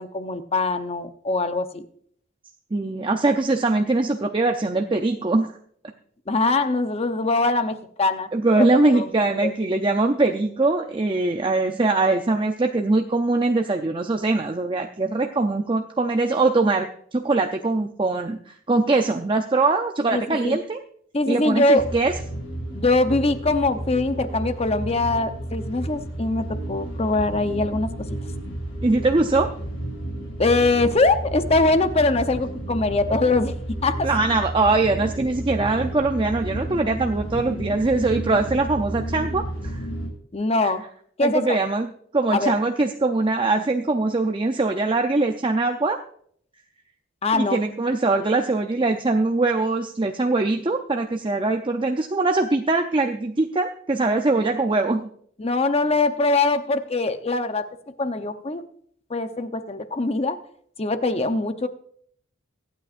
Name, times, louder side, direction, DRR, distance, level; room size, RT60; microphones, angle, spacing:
voice 1, 0.0-1.8 6.3-8.3 8.6-8.7 8.9-9.1 9.4-9.5 20.1-20.6 21.1-21.8 22.7-27.9 30.4-33.5 33.8-34.1 40.3-40.8 41.2-41.6 42.3-42.5 47.2-47.6 55.4-57.7 58.0-58.6 59.1-60.4 60.8-61.7, left 2 dB, 30° left, 9 dB, 0.8 m, -22 dB
voice 2, 2.7-5.5 8.3-20.8 21.3-22.1 28.8-29.5 34.0-39.8 40.6-40.7 41.2-46.0 47.3-55.0, right 3 dB, 25° right, 5 dB, 0.6 m, -22 dB
sound 1, 21.8-40.1, right 1 dB, 80° left, 5.8 m, -32 dB
24.0 x 8.8 x 2.5 m, 0.63 s
head